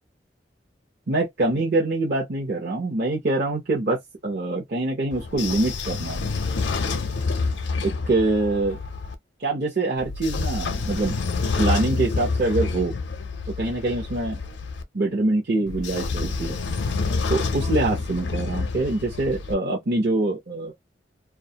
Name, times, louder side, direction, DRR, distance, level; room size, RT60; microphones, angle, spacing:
voice 1, 1.1-6.3 7.8-8.8 9.4-11.2 11.6-12.9 13.6-14.4 14.9-16.6 17.3-20.7, right 2 dB, 60° right, 0.8 m, -24 dB
Train / Sliding door, 5.1-9.1 10.0-14.8 15.7-19.5, left 4 dB, 75° left, 0.5 m, -28 dB
2.3 x 2.1 x 2.8 m
head